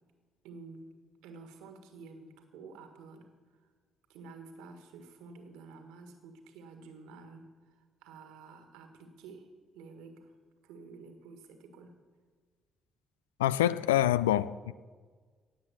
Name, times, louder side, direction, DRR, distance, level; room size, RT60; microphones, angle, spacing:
voice 1, 0.4-0.9 1.2-3.7 4.1-10.3 10.6-12.0, right 4 dB, 75° right, 1.7 m, -50 dB
voice 2, 13.4-14.7, left 12 dB, 85° left, 0.3 m, -26 dB
17.5 x 7.8 x 7.2 m
hypercardioid pair, 45°, 0 cm